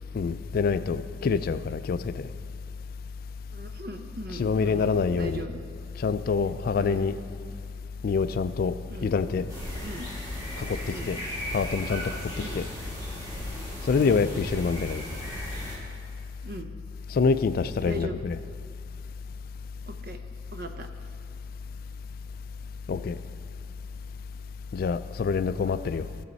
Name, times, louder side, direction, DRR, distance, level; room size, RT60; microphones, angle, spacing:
voice 1, 0.1-2.3 4.3-5.5 6.0-7.2 8.0-8.8 9.0-9.5 10.6-11.2 11.5-12.7 13.9-15.0 17.1-18.4 22.9-23.2 24.7-26.1, left 5 dB, 50° left, 0.3 m, -26 dB
voice 2, 3.5-5.6 6.8-7.0 8.9-9.1 9.8-10.1 10.9-11.1 12.4-12.6 14.0-14.2 16.4-16.7 17.8-18.2 19.8-20.2 20.5-20.9, right 1 dB, 55° right, 0.8 m, -38 dB
sound 1, 9.5-15.8, equal, 20° right, 2.0 m, -36 dB
16.0 x 6.3 x 4.1 m
head